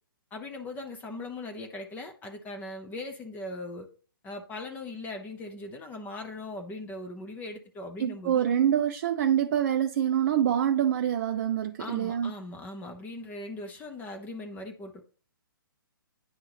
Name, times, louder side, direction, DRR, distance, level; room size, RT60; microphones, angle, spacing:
voice 1, 0.3-3.9 4.2-8.5 11.8-15.0, left 2 dB, 15° left, 0.7 m, -39 dB
voice 2, 8.0-12.3, right 10 dB, 45° right, 0.4 m, -25 dB
10.0 x 3.6 x 2.9 m
figure-of-eight pair, 130°, 12 cm